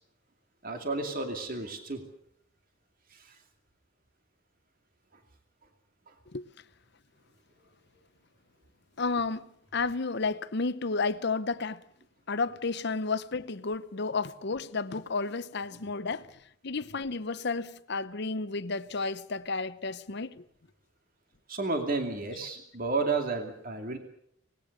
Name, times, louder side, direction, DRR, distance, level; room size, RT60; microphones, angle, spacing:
voice 1, 0.6-2.0 3.1-3.3 21.5-24.0, right 3 dB, 45° right, 2.5 m, -32 dB
voice 2, 9.0-9.4 9.7-11.8 12.3-16.3 16.6-20.4, left 4 dB, 55° left, 0.8 m, -32 dB
25.5 x 20.0 x 6.6 m
head